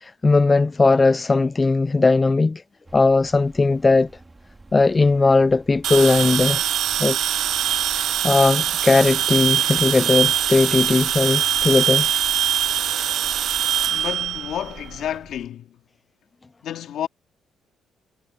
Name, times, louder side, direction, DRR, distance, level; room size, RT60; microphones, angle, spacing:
voice 1, 0.0-2.6 2.9-4.1 4.7-6.6 7.0-7.2 7.9-12.1, left 3 dB, 25° left, 0.4 m, -18 dB
sound 1, 2.9-15.5, right 2 dB, 20° right, 4.0 m, -47 dB
sound 2, 5.8-15.1, right 10 dB, 70° right, 0.7 m, -22 dB
voice 2, 13.9-15.8 16.6-17.1, left 10 dB, 75° left, 2.2 m, -30 dB
cardioid pair, 90°, 0 cm